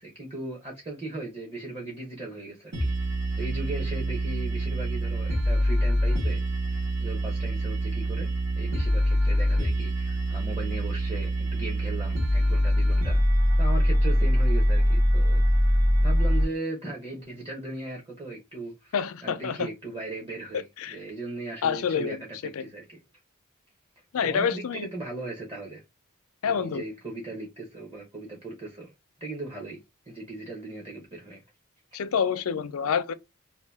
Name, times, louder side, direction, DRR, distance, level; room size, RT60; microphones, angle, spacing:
voice 1, 0.0-2.9 3.4-6.4 6.7-8.3 8.6-13.2 13.6-18.9 19.2-23.0 24.2-25.8 26.5-28.9 29.2-29.8 30.1-31.4, right 2 dB, 25° right, 0.8 m, -38 dB
sound 1, 2.7-16.4, equal, 60° right, 1.3 m, -24 dB
voice 2, 18.9-19.7 20.8-20.9 21.6-22.2 22.5-22.6 24.1-24.9 26.4-26.8 31.9-33.1, left 7 dB, 80° left, 0.4 m, -27 dB
2.8 x 2.6 x 3.3 m
head